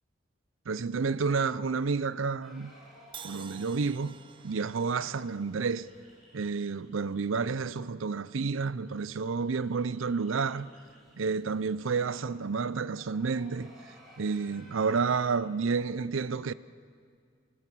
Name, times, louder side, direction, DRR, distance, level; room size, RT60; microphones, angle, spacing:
voice 1, 0.7-2.7 3.2-4.2 4.4-5.9 6.3-10.7 11.2-16.5, right 5 dB, 80° right, 0.6 m, -30 dB
sound 1, 2.4-7.5 7.8-7.9 8.2-8.3 8.5-15.2, equal, ahead, 6.5 m, -58 dB
Crash cymbal, 3.1-7.2, right 7 dB, 25° right, 0.5 m, -51 dB
25.0 x 19.5 x 6.2 m
head